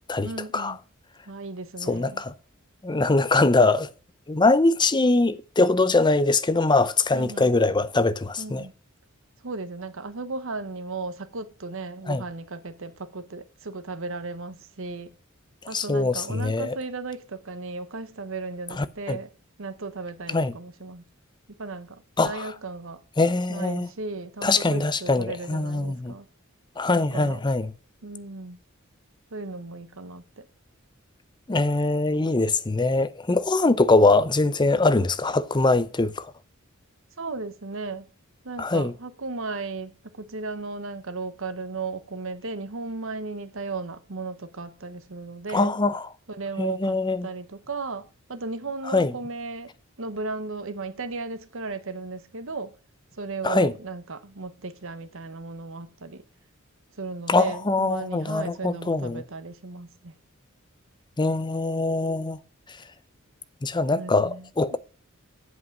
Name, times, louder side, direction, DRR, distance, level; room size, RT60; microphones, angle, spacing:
voice 1, 0.2-0.8 1.3-2.2 7.1-7.5 8.4-8.7 9.4-15.1 15.7-19.3 19.6-21.0 21.6-23.0 23.5-26.3 26.9-27.4 28.0-28.6 29.3-30.4 37.2-38.1 38.4-45.7 46.3-49.7 50.0-52.7 53.1-56.2 57.0-60.1 63.9-64.8, right 3 dB, 70° right, 1.1 m, -35 dB
voice 2, 1.9-2.3 2.8-3.9 4.3-8.7 12.1-12.2 15.7-16.8 18.8-19.2 20.3-20.5 22.2-22.5 23.2-23.9 24.4-26.1 26.8-27.7 31.5-36.3 38.6-38.9 45.5-46.1 46.6-47.3 48.9-49.1 53.4-53.7 57.3-59.2 61.2-62.4 63.6-64.8, left 3 dB, 20° left, 0.6 m, -22 dB
8.2 x 7.7 x 6.0 m
head